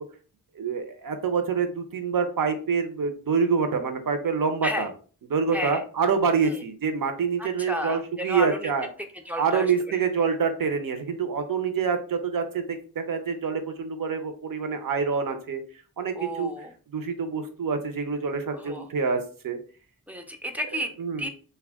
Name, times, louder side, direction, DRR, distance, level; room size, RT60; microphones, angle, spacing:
voice 1, 0.6-4.9 5.3-8.9 9.4-15.6 16.0-16.5 16.9-19.6 21.0-21.3, right 5 dB, 60° right, 8 dB, 0.6 m, -26 dB
voice 2, 7.4-8.7 9.3-9.7 16.2-16.7 18.5-18.9 20.1-20.9 21.2-21.3, equal, 5° right, 5 dB, 0.4 m, -32 dB
2.3 x 2.1 x 3.4 m, 0.40 s
cardioid pair, 55°, 37 cm